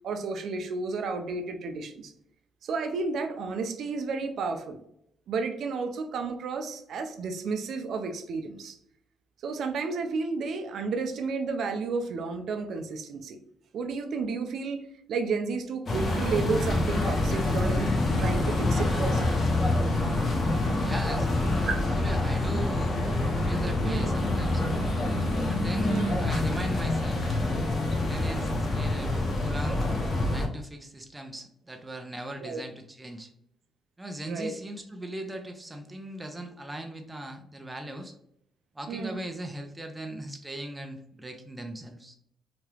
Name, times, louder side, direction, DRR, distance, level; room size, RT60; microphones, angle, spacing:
voice 1, 0.0-2.1 2.6-4.8 5.3-8.8 9.4-13.4 13.7-19.2 21.6-21.8 23.8-24.2 25.9-26.2 32.4-32.6 34.2-34.5 38.9-39.3, right 4 dB, 65° right, 7 dB, 0.5 m, -32 dB
sound 1, 15.9-30.5, left 2 dB, 45° left, 0.8 m, -26 dB
voice 2, 20.8-21.3 22.0-22.9 23.4-24.9 25.5-27.4 28.0-29.1 29.4-29.9 30.3-33.3 34.0-38.1 38.7-42.2, right 1 dB, 15° right, 5 dB, 0.5 m, -39 dB
2.9 x 2.3 x 3.2 m, 0.73 s
cardioid pair, 90°, 0 cm